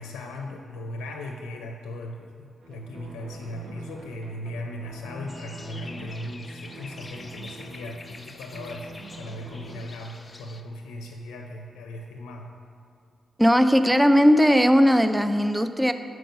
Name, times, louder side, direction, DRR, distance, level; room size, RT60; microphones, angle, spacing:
voice 1, 0.0-12.5, left 1 dB, 85° left, 2 dB, 0.5 m, -38 dB
sound 1, 2.6-9.8, right 2 dB, 65° right, 0.8 m, -44 dB
sound 2, 5.3-10.6, left 2 dB, 35° left, 0.6 m, -45 dB
voice 2, 13.4-15.9, equal, 10° right, 9 dB, 0.4 m, -18 dB
7.6 x 4.6 x 5.3 m, 2.4 s
supercardioid pair, 45°, 0 cm